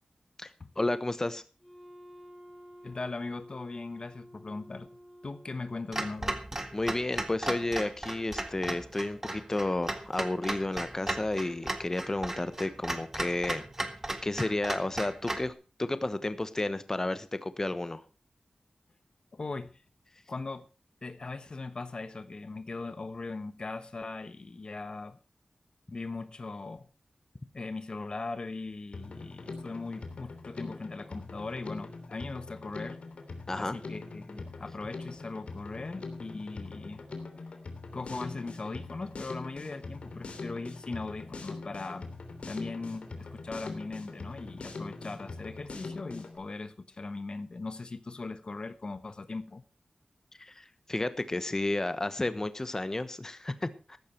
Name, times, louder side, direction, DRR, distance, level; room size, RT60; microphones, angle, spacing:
voice 1, 0.8-1.4 6.7-13.6 14.2-15.5 15.8-18.0 33.5-33.8 50.4-54.0, left 2 dB, 25° left, 1.1 m, -32 dB
Wind instrument woodwind instrument, 1.6-6.3, equal, 5° left, 4.4 m, -52 dB
voice 2, 2.8-4.9 5.2-6.4 19.3-19.8 20.3-20.7 21.0-25.2 25.9-26.9 27.5-33.0 33.6-37.0 37.9-42.1 42.5-49.6, left 3 dB, 45° left, 1.1 m, -39 dB
Clock, 5.9-15.5, right 1 dB, 20° right, 1.9 m, -36 dB
Drum kit, 28.9-46.4, left 3 dB, 75° left, 3.1 m, -43 dB
15.0 x 12.5 x 4.5 m
wide cardioid pair, 110°, 2 cm